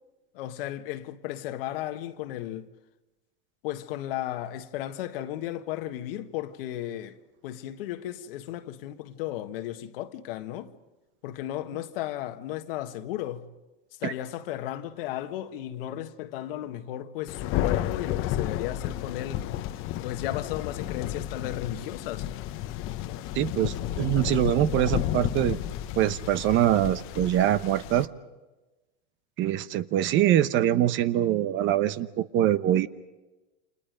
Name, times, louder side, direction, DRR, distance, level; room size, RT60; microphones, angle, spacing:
voice 1, 0.3-2.7 3.6-7.2 7.4-10.7 11.2-13.5 14.0-19.4 20.0-22.3, left 13 dB, 70° left, 1.5 m, -34 dB
Thunder, 17.3-28.0, left 12 dB, 45° left, 1.0 m, -32 dB
voice 2, 23.3-25.6 26.0-28.1 29.4-32.9, right 12 dB, 40° right, 0.9 m, -24 dB
29.5 x 27.0 x 5.1 m
supercardioid pair, 120°, 30 cm